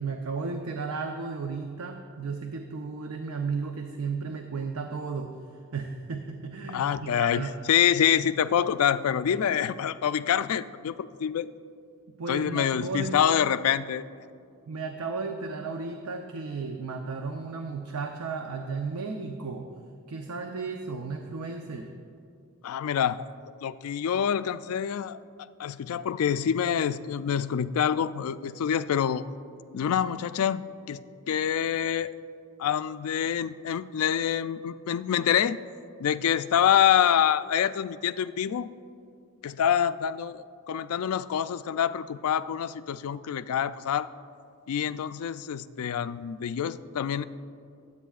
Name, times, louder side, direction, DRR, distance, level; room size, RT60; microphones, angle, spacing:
voice 1, 0.0-5.3 5.7-7.6 12.2-13.2 14.7-19.7 20.1-21.9, right 4 dB, 80° right, 4 dB, 0.6 m, -34 dB
voice 2, 6.7-11.5 12.3-14.0 22.6-23.3 23.6-25.2 25.6-29.2 29.7-32.1 32.6-35.6 36.0-38.7 39.4-44.1 44.7-47.2, left 9 dB, 70° left, 14 dB, 0.3 m, -26 dB
24.0 x 8.3 x 2.4 m, 2.3 s
head